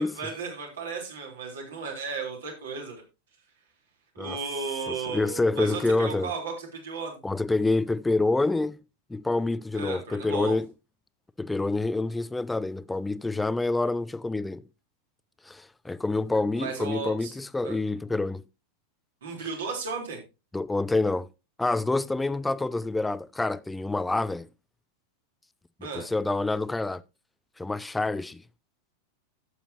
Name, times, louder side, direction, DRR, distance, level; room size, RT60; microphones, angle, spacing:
voice 1, 0.0-3.0 4.2-7.2 9.7-10.6 16.5-17.3 17.6-17.8 19.2-20.2 25.8-26.1, right 5 dB, 65° right, 3.5 m, -34 dB
voice 2, 4.9-6.3 7.2-8.8 9.1-10.7 11.4-14.6 15.5-18.4 20.5-21.3 21.6-24.5 25.8-27.0 27.6-28.4, left 2 dB, 5° left, 0.4 m, -27 dB
12.0 x 8.4 x 2.8 m
figure-of-eight pair, 90°, 0 cm